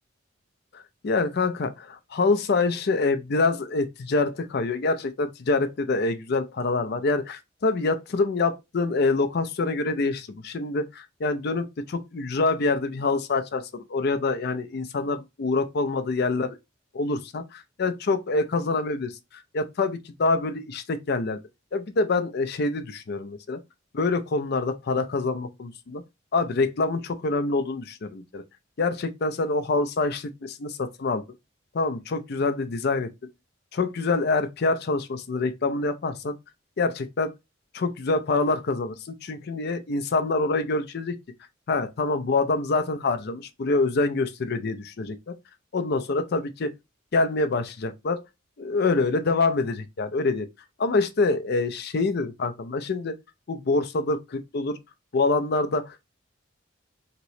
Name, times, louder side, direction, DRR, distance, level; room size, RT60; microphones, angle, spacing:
voice 1, 0.7-16.6 16.9-19.1 19.5-21.4 21.7-23.6 23.9-26.0 26.3-28.4 28.8-31.2 31.7-33.1 33.7-36.4 36.8-37.3 37.7-41.2 41.7-45.3 45.7-46.7 47.1-48.2 48.6-50.5 50.8-53.1 53.5-54.8 55.1-56.0, left 3 dB, 55° left, 0.5 m, -26 dB
3.0 x 2.9 x 2.6 m
head